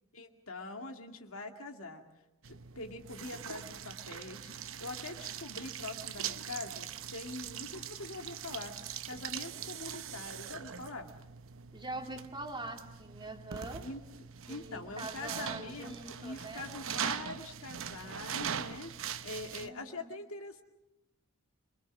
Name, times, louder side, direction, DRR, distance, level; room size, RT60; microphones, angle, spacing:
voice 1, 0.1-2.0 2.5-4.5 4.8-8.7 9.1-11.1 13.8-14.0 14.5-18.9 19.2-20.6, left 2 dB, 65° left, 4 dB, 2.3 m, -44 dB
sound 1, 2.4-19.7, right 8 dB, 65° right, 0.9 m, -42 dB
voice 2, 11.7-13.8 14.5-16.7 19.6-20.1, right 2 dB, 20° right, 4 dB, 2.2 m, -43 dB
26.5 x 23.0 x 6.2 m, 0.92 s
head